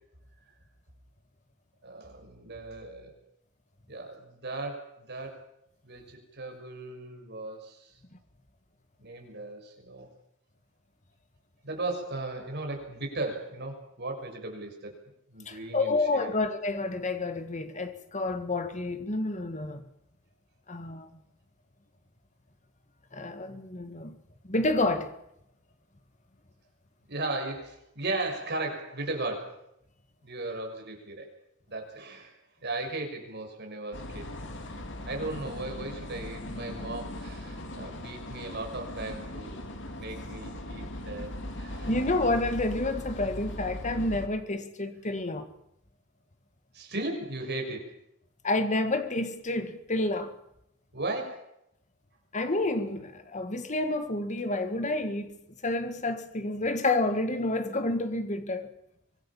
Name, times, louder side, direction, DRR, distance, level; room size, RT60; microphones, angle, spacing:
voice 1, 1.8-3.1 3.9-5.4 5.8-8.0 9.0-10.1 11.6-14.9 15.3-16.3 27.1-29.6 30.2-31.3 31.7-34.3 35.1-39.7 39.9-41.9 46.7-47.9 50.9-51.5, right 2 dB, 55° right, 6.2 m, -36 dB
voice 2, 15.5-19.8 20.7-21.1 23.1-24.2 24.4-25.1 41.8-45.5 48.4-50.3 52.3-55.4 55.6-58.7, left 2 dB, 35° left, 1.9 m, -29 dB
sound 1, 33.9-44.3, left 1 dB, 60° left, 3.1 m, -39 dB
24.5 x 21.0 x 7.3 m
head